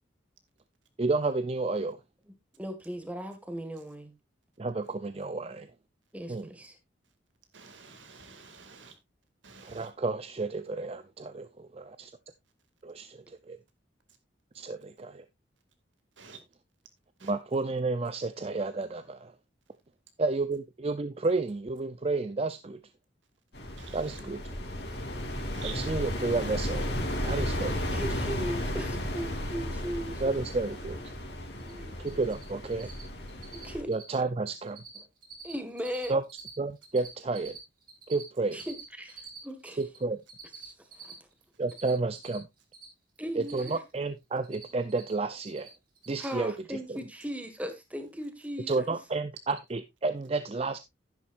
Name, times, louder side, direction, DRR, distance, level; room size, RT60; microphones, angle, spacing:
voice 1, 1.0-2.0 4.6-5.7 6.3-6.5 9.7-12.1 12.8-13.2 14.5-15.2 17.2-19.3 20.2-22.8 23.9-24.4 25.7-26.9 27.2-28.0 30.2-31.0 32.0-32.9 33.9-34.8 36.1-36.2 36.6-37.6 38.1-38.6 39.8-40.2 41.6-42.5 43.4-45.7 46.1-47.0 48.7-50.8, right 3 dB, 30° right, 0.5 m, -31 dB
voice 2, 2.2-4.1 6.1-6.8 24.2-24.3 27.9-30.4 31.6-32.3 33.5-33.9 34.9-35.0 35.4-36.2 38.5-39.8 40.6-40.7 41.0-41.1 43.2-43.8 46.2-49.0, equal, 10° right, 1.7 m, -38 dB
voice 3, 7.5-8.9 9.4-9.9 16.2-16.4 17.2-17.3 23.8-24.2 25.5-25.9, right 6 dB, 85° right, 2.2 m, -47 dB
sound 1, 23.5-33.8, left 1 dB, 60° left, 3.0 m, -34 dB
Cricket, 31.6-31.7 32.0-32.4 32.7-33.0 33.3-33.7 33.9-34.2 34.5-35.0 35.2-36.5 36.8-40.0 40.3-42.9 43.2-44.0 44.2-45.1 45.4-45.7 46.0-46.3, right 7 dB, 50° right, 3.9 m, -46 dB
11.0 x 10.5 x 2.5 m
head